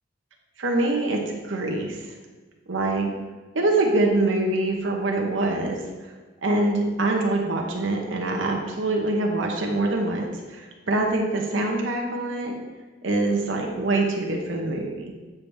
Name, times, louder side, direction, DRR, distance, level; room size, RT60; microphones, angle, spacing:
voice 1, 0.6-1.2 1.5-2.0 2.7-3.1 3.5-5.8 6.4-12.5 13.0-15.1, right 2 dB, 75° right, 1 dB, 0.9 m, -24 dB
8.5 x 5.8 x 3.4 m, 1.3 s
head